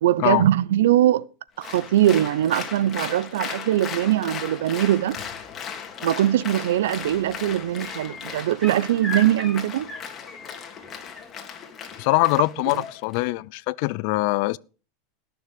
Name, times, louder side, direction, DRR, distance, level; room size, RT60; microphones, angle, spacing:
voice 1, 0.0-1.3 1.6-5.2 6.0-9.9, right 12 dB, 80° right, 0.7 m, -21 dB
Applause, 1.6-13.2, left 7 dB, 30° left, 2.8 m, -37 dB
sound 1, 6.5-6.9 7.2-11.2 12.9-13.0, left 2 dB, 10° left, 4.7 m, -37 dB
voice 2, 12.0-14.6, left 22 dB, 60° left, 0.5 m, -23 dB
18.0 x 6.9 x 5.3 m
supercardioid pair, 115°, 0 cm